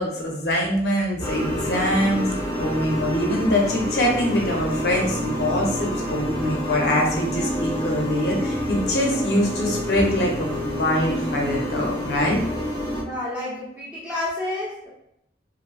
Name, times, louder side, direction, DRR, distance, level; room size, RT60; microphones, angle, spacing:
voice 1, 0.0-2.3 2.6-12.4, left 1 dB, 60° left, -1 dB, 0.6 m, -23 dB
sound 1, 1.2-13.0, equal, 20° left, 0.8 m, -28 dB
voice 2, 12.9-14.9, left 1 dB, 5° right, -8 dB, 1.0 m, -30 dB
3.3 x 2.6 x 2.4 m, 0.77 s
head